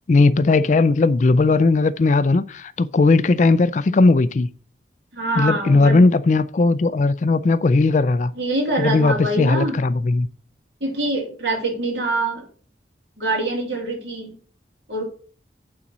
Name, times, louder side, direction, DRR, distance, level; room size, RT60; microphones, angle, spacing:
voice 1, 0.1-4.5 5.4-8.3 8.8-10.3, left 3 dB, 45° left, 0.4 m, -17 dB
voice 2, 5.1-6.0 8.4-9.8 10.8-12.4 13.2-14.3 14.9-15.0, right 2 dB, 90° right, 3.1 m, -24 dB
8.7 x 4.1 x 6.1 m
head